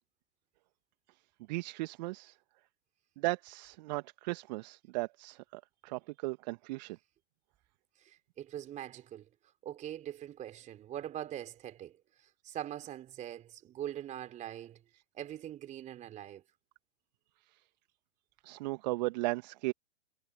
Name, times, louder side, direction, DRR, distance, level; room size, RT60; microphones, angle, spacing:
voice 1, 1.5-2.4 3.2-7.0 18.4-19.7, right 22 dB, 35° right, 1.6 m, -36 dB
voice 2, 8.0-9.3 9.6-12.0 12.4-14.8 15.1-16.4, right 11 dB, 20° right, 3.3 m, -42 dB
figure-of-eight pair, 120°, 38 cm